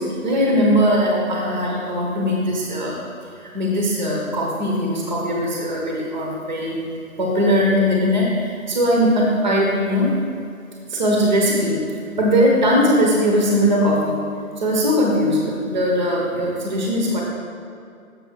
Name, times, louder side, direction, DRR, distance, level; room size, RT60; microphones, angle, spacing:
voice 1, 0.0-3.0 3.4-6.8 7.2-10.2 10.9-11.8 12.1-14.2 14.6-17.2, equal, 30° right, -2 dB, 0.8 m, -20 dB
6.8 x 5.7 x 4.4 m, 2.4 s
figure-of-eight pair, 160°, 43 cm